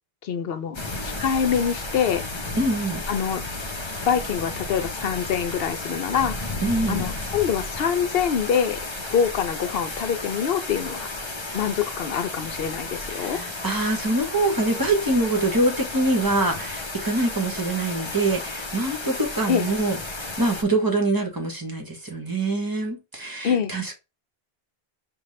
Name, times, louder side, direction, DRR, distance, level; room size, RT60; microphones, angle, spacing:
voice 1, 0.2-2.2 3.1-3.4 4.1-6.5 6.9-8.8 9.1-11.1 11.5-13.4 19.5-19.7 23.4-23.7, left 7 dB, 70° left, 0.8 m, -25 dB
sound 1, 0.7-20.6, left 2 dB, 30° left, 0.7 m, -33 dB
voice 2, 2.6-3.0 6.6-7.1 13.1-23.9, right 2 dB, 20° right, 0.9 m, -24 dB
5.3 x 2.3 x 3.1 m
omnidirectional pair, 1.1 m